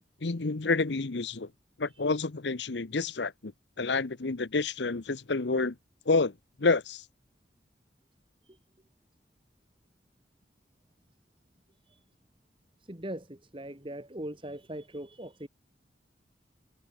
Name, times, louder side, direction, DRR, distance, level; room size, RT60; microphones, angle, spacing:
voice 1, 0.2-1.5 1.8-3.5 3.8-5.8 6.1-7.0, left 3 dB, 75° left, 0.9 m, -29 dB
voice 2, 12.8-15.5, right 1 dB, 30° right, 2.0 m, -41 dB
head